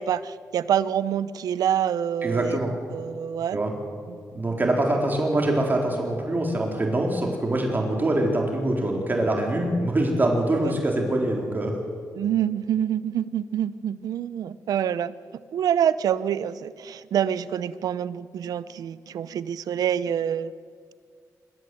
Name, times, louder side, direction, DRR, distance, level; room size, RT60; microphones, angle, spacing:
voice 1, 0.0-3.6 4.1-4.2 10.6-10.7 12.1-15.1 15.5-20.5, right 9 dB, 85° right, 16 dB, 0.7 m, -26 dB
voice 2, 2.2-2.7 3.5-3.7 4.3-11.7, right 1 dB, 30° right, 1 dB, 4.0 m, -24 dB
25.5 x 13.0 x 7.9 m, 2.1 s
cardioid pair, 80°, 6 cm